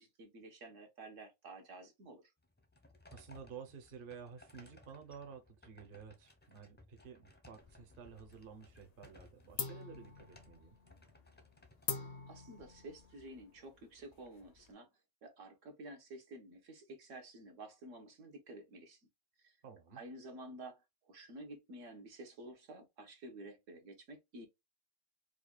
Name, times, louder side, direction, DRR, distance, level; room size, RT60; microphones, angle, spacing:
voice 1, 0.0-2.2 12.0-14.9 15.2-19.0 19.4-19.6 19.9-24.5, right 2 dB, 75° right, 1.4 m, -51 dB
sound 1, 2.4-12.7, left 2 dB, 15° left, 0.5 m, -62 dB
voice 2, 3.1-10.8 19.6-20.0, right 6 dB, 50° right, 0.9 m, -52 dB
sound 2, 7.6-8.5 8.8-9.2 9.6-14.7, left 6 dB, 75° left, 0.3 m, -45 dB
4.8 x 2.3 x 2.2 m
omnidirectional pair, 1.3 m